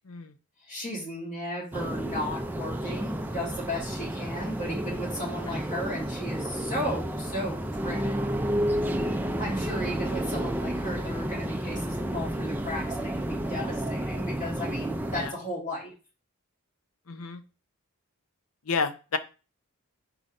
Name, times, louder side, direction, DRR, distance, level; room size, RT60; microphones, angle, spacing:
voice 1, 0.6-8.3 9.4-15.9, equal, 35° left, -2 dB, 2.0 m, -35 dB
sound 1, 1.7-15.3, right 1 dB, 10° right, 0.4 m, -31 dB
voice 2, 17.1-17.4 18.7-19.2, left 4 dB, 75° left, 10 dB, 0.7 m, -30 dB
4.5 x 4.0 x 5.2 m, 0.34 s
head